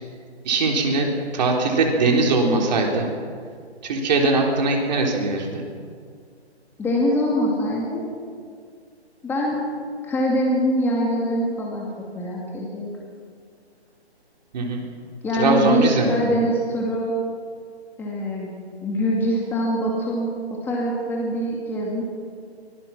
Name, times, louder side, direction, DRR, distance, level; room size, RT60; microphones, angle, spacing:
voice 1, 0.4-3.1 3.8-5.6 14.5-14.8 15.3-16.2, right 3 dB, 40° right, 0 dB, 3.8 m, -21 dB
voice 2, 6.8-8.0 9.2-9.6 10.0-11.9 12.1-12.9 15.2-17.1 18.0-18.5 18.8-22.0, equal, 5° left, -3 dB, 2.3 m, -23 dB
24.0 x 20.0 x 6.0 m, 2.1 s
figure-of-eight pair, 145°, 33 cm